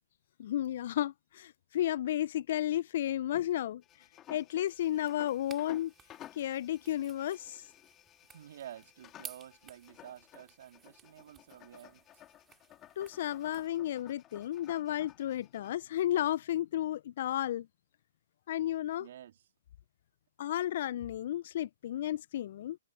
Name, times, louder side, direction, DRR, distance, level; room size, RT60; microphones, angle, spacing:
voice 1, 0.4-3.8 4.3-5.9 6.4-7.6 13.0-17.7 18.5-19.1 20.4-22.8, left 12 dB, 50° left, 0.6 m, -33 dB
sound 1, 3.8-15.7, left 12 dB, 25° left, 2.3 m, -56 dB
sound 2, 4.7-13.7, right 8 dB, 15° right, 3.4 m, -56 dB
voice 2, 8.3-12.0 19.0-19.4, right 11 dB, 55° right, 2.0 m, -50 dB
hypercardioid pair, 130°, 0 cm